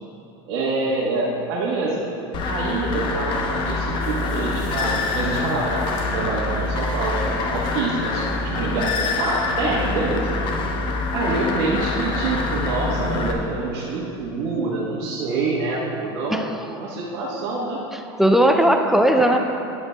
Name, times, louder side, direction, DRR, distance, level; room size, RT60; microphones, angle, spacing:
voice 1, 0.5-2.0 2.5-10.3 11.1-16.5 16.8-17.8 19.1-19.4, right 3 dB, 70° right, -6 dB, 1.2 m, -26 dB
sound 1, 2.3-13.3, left 3 dB, 35° left, 0.7 m, -25 dB
sound 2, 4.0-7.9 8.4-8.5 8.7-8.8, left 3 dB, 70° left, 1.5 m, -47 dB
sound 3, 10.5-14.1, right 1 dB, 20° right, 1.6 m, -47 dB
voice 2, 16.3-16.8 17.9-19.4, right 1 dB, ahead, 4 dB, 0.3 m, -18 dB
11.0 x 7.8 x 2.2 m, 2.8 s
supercardioid pair, 135°, 14 cm